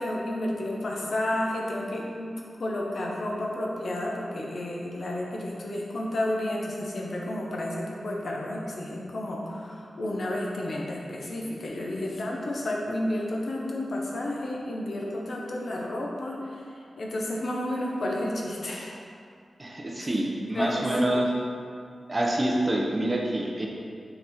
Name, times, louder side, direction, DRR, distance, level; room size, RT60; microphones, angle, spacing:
voice 1, 0.0-2.3 2.6-19.0 20.0-20.1 20.5-21.2, left 1 dB, 55° left, -2 dB, 0.9 m, -31 dB
voice 2, 19.6-21.3 22.1-23.7, right 1 dB, 25° right, -1 dB, 0.7 m, -26 dB
6.8 x 4.0 x 4.3 m, 2.4 s
wide cardioid pair, 170°, 0 cm